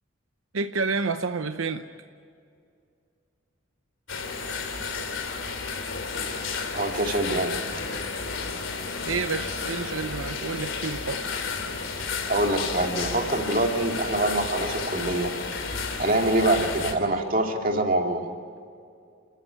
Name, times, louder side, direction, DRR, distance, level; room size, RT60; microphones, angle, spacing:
voice 1, 0.5-1.8 9.0-11.3, right 4 dB, 80° right, 9 dB, 0.8 m, -29 dB
sound 1, 4.1-16.9, left 4 dB, 75° left, 3.0 m, -32 dB
voice 2, 6.7-7.5 12.3-15.3 16.0-18.2, right 1 dB, 40° right, 2 dB, 2.5 m, -25 dB
29.5 x 14.0 x 9.3 m, 2.4 s
head